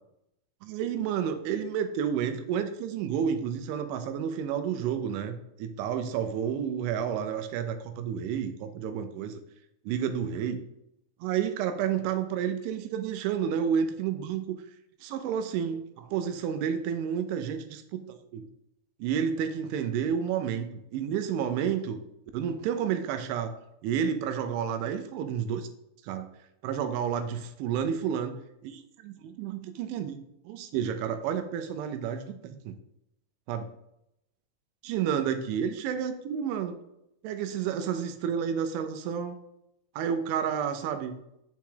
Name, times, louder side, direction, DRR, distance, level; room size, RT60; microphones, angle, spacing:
voice 1, 0.6-9.4 9.9-10.6 11.2-14.6 15.0-18.5 19.0-22.0 22.3-23.5 23.8-25.7 26.0-26.3 26.6-32.8 33.5-33.7 34.8-36.8 37.2-39.4 40.0-41.2, right 8 dB, 80° right, 8 dB, 2.9 m, -30 dB
7.3 x 7.3 x 3.8 m, 0.81 s
omnidirectional pair, 5.8 m